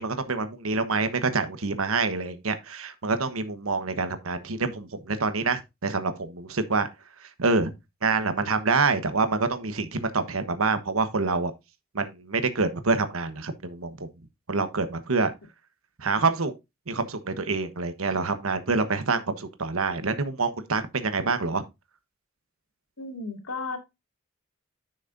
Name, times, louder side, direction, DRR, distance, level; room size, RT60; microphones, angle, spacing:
voice 1, 0.0-6.9 7.4-7.7 8.0-11.5 11.9-14.1 14.5-15.3 16.0-16.5 16.9-21.6, right 4 dB, 80° right, 1.2 m, -26 dB
voice 2, 23.0-23.8, left 3 dB, 75° left, 2.3 m, -34 dB
10.0 x 6.4 x 2.6 m
head